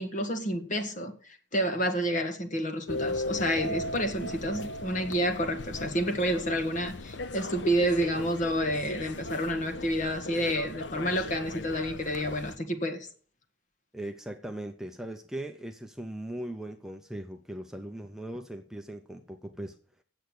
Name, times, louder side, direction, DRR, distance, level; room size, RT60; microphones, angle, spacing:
voice 1, 0.0-13.1, equal, 40° left, 7 dB, 1.6 m, -29 dB
sound 1, 2.9-12.6, left 2 dB, 65° left, 0.8 m, -38 dB
voice 2, 13.9-19.8, right 1 dB, ahead, 4 dB, 0.7 m, -39 dB
8.6 x 7.9 x 8.2 m, 0.43 s
head